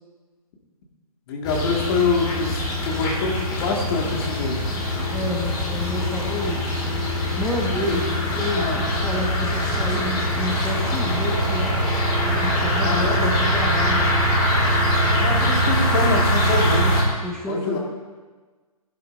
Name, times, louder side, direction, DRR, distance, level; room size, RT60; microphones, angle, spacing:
voice 1, 1.3-4.6 7.8-7.9 8.5-8.8 12.8-13.3 15.1-17.1 17.5-17.8, left 4 dB, 40° left, 0 dB, 2.1 m, -25 dB
sound 1, 1.4-17.0, equal, 20° left, 2.3 m, -22 dB
voice 2, 5.1-7.0 7.4-8.0 8.3-11.8 12.2-14.2 17.2-17.8, left 1 dB, 5° left, -2 dB, 1.4 m, -29 dB
15.5 x 11.5 x 2.7 m, 1.3 s
figure-of-eight pair, 135°, 20 cm